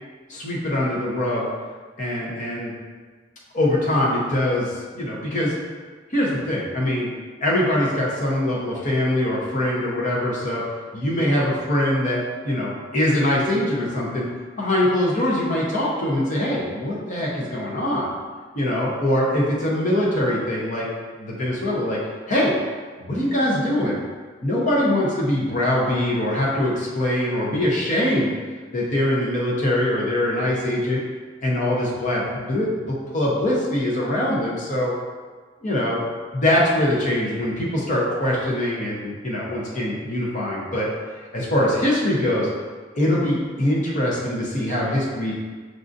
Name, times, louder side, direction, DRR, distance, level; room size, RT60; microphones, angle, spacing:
voice 1, 0.3-1.5 2.0-2.7 3.5-5.5 6.1-7.1 7.4-10.6 10.9-14.3 14.6-18.1 18.6-20.9 21.2-22.0 22.3-22.5 23.0-24.0 24.4-28.3 28.7-31.0 31.4-34.9 35.6-36.0 36.3-40.9 41.3-42.5 43.0-45.4, left 1 dB, 45° left, -4 dB, 0.7 m, -23 dB
6.2 x 2.5 x 2.6 m, 1.5 s
head